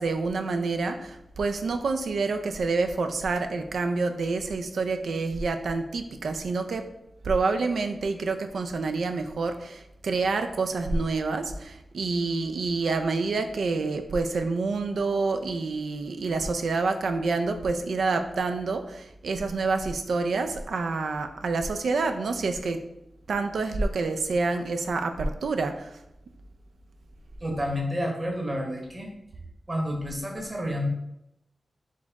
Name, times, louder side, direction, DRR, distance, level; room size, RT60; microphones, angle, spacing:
voice 1, 0.0-6.9 7.2-22.8 23.3-25.9, right 3 dB, 80° right, 7 dB, 0.4 m, -27 dB
voice 2, 27.4-29.1 29.7-30.9, equal, 35° right, 0 dB, 1.1 m, -30 dB
4.2 x 2.9 x 3.5 m, 0.83 s
cardioid pair, 55°, 0 cm